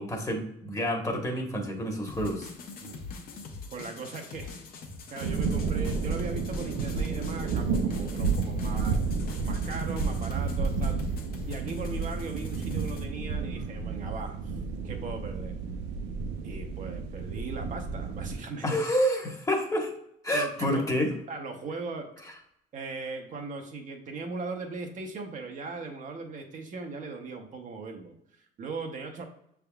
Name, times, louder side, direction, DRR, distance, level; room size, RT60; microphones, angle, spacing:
voice 1, 0.0-2.5 18.6-19.9 20.2-21.1, equal, 20° left, 2 dB, 1.1 m, -28 dB
sound 1, 2.1-13.0, left 4 dB, 60° left, 0.9 m, -43 dB
voice 2, 3.7-4.6 5.1-11.0 11.4-14.6 14.8-15.5 16.4-18.8 20.3-20.8 21.3-22.1 22.7-29.2, right 4 dB, 50° right, 3 dB, 0.7 m, -39 dB
sound 2, 5.2-18.4, right 4 dB, 90° right, 0.6 m, -31 dB
6.6 x 3.5 x 2.3 m, 0.74 s
cardioid pair, 110°, 17 cm